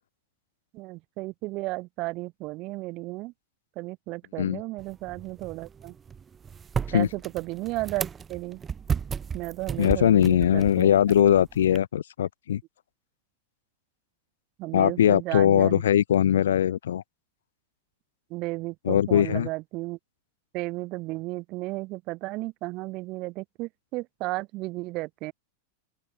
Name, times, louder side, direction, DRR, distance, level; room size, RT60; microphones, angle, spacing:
voice 1, 0.7-3.3 3.7-5.9 6.9-8.6 9.3-10.9 14.6-15.8 18.3-20.0 20.5-25.3, right 21 dB, 40° right, 1.3 m, -34 dB
sound 1, 4.8-11.8, right 6 dB, 20° right, 0.3 m, -35 dB
voice 2, 9.8-12.6 14.7-17.0 18.9-19.5, left 10 dB, 65° left, 0.4 m, -21 dB
open air
figure-of-eight pair, 90°, 0 cm